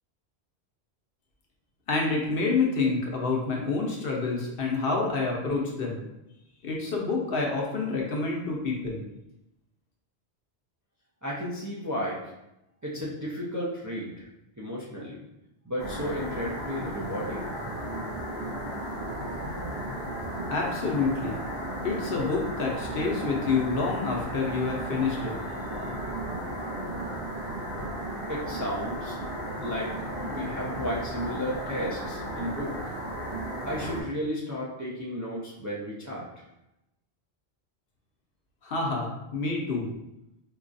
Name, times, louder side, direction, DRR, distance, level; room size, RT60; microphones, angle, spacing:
voice 1, 1.9-6.0 6.6-9.0 20.5-21.4 21.8-25.3 38.6-39.9, left 4 dB, 65° left, -1 dB, 0.8 m, -28 dB
voice 2, 11.2-12.2 12.8-14.3 14.6-15.2 15.6-17.5 28.3-29.2 29.6-29.9 30.2-33.0 33.6-36.4, equal, 25° right, -6 dB, 0.4 m, -33 dB
sound 1, 15.8-34.0, right 1 dB, 65° right, 1.5 m, -34 dB
4.5 x 2.3 x 2.5 m, 0.88 s
omnidirectional pair, 1.1 m